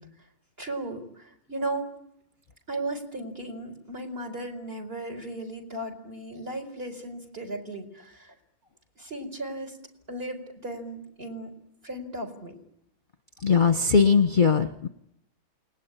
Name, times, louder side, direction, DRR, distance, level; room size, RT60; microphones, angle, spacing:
voice 1, 0.6-1.9 2.7-8.3 9.0-9.8 10.1-11.5 11.8-12.6, right 1 dB, 35° right, 2 dB, 5.1 m, -36 dB
voice 2, 13.4-14.9, left 5 dB, 30° left, 9 dB, 1.2 m, -20 dB
28.5 x 20.5 x 10.0 m, 0.78 s
omnidirectional pair, 1.7 m